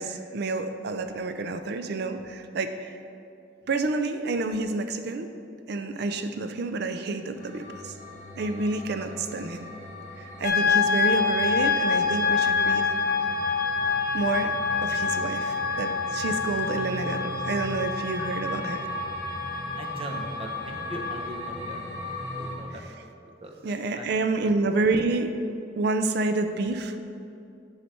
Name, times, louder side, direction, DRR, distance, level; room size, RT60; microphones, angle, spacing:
voice 1, 0.0-3.0 3.7-5.3 5.7-7.9 8.4-9.7 10.2-12.9 14.1-18.9 22.7-23.0 23.6-25.3 25.8-27.0, right 3 dB, 60° right, 8 dB, 0.4 m, -29 dB
sound 1, 7.3-22.6, left 1 dB, 15° right, 1.5 m, -37 dB
sound 2, 10.4-21.3, left 5 dB, 55° left, 0.6 m, -27 dB
voice 2, 19.8-21.8 22.2-22.7 23.4-23.6 23.9-24.1, equal, 30° right, 3 dB, 0.7 m, -39 dB
8.2 x 5.7 x 4.3 m, 2.6 s
head